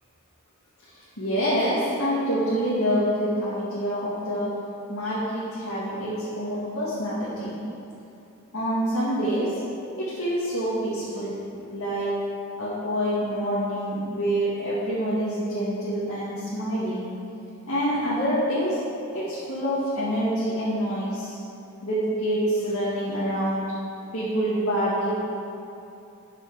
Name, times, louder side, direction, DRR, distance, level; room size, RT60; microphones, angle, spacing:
voice 1, 1.2-4.5 4.9-7.5 8.5-9.6 10.0-12.2 12.6-17.0 17.7-18.8 19.1-21.4 21.8-23.7 24.1-25.1, equal, 65° left, -10 dB, 2.3 m, -26 dB
9.3 x 6.8 x 6.1 m, 2.8 s
head